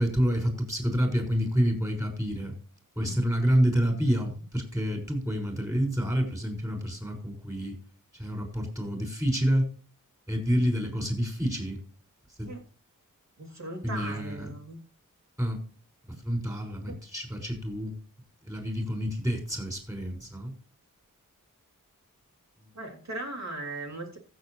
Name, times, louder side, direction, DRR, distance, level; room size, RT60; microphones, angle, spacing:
voice 1, 0.0-2.5 3.0-7.8 8.1-9.7 10.3-11.8 12.4-12.5 13.8-14.5 15.4-15.6 16.1-17.9 18.4-20.5, equal, 10° right, 2 dB, 5.9 m, -28 dB
voice 2, 13.4-14.8 16.9-17.0 22.7-24.2, right 2 dB, 55° right, 0 dB, 3.5 m, -38 dB
15.5 x 7.7 x 3.3 m, 0.38 s
wide cardioid pair, 45°, 33 cm